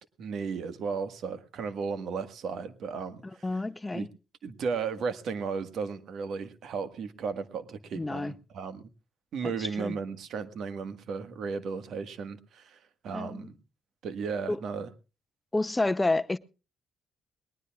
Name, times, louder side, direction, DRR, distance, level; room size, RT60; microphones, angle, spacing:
voice 1, 0.2-3.5 3.9-4.1 4.4-8.9 9.3-12.8 13.0-13.6 14.0-14.9, right 5 dB, 70° right, 1.6 m, -35 dB
voice 2, 3.4-4.1 7.9-8.3 9.4-10.0 13.1-13.5 14.5-14.6 15.5-16.4, left 2 dB, 15° left, 0.6 m, -29 dB
20.5 x 19.0 x 2.4 m
cardioid pair, 90°, 0 cm